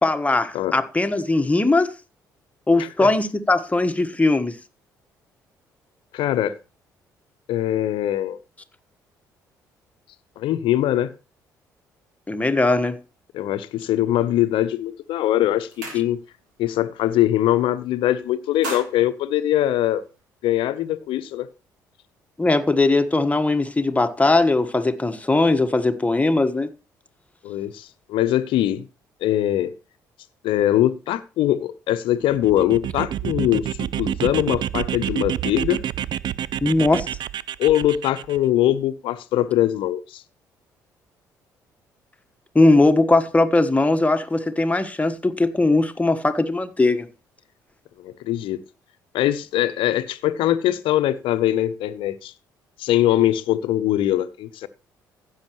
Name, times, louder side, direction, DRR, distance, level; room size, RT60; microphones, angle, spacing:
voice 1, 0.0-1.9 2.7-4.6 12.3-13.0 22.4-26.7 36.6-37.1 42.5-47.1, left 2 dB, 15° left, 1.4 m, -19 dB
voice 2, 2.8-3.1 6.1-6.5 7.5-8.4 10.4-11.1 13.3-16.2 16.6-20.0 20.4-21.5 27.4-28.9 29.2-29.7 30.4-35.8 37.6-40.2 48.0-48.6 49.1-52.3 52.8-54.7, left 13 dB, 60° left, 0.9 m, -22 dB
sound 1, 14.8-15.0 15.4-16.5 16.9-17.1 17.4-18.0 18.3-20.2, right 2 dB, 80° right, 3.3 m, -38 dB
sound 2, 32.3-38.4, right 11 dB, 50° right, 0.5 m, -28 dB
16.0 x 7.3 x 3.1 m
figure-of-eight pair, 45°, 10 cm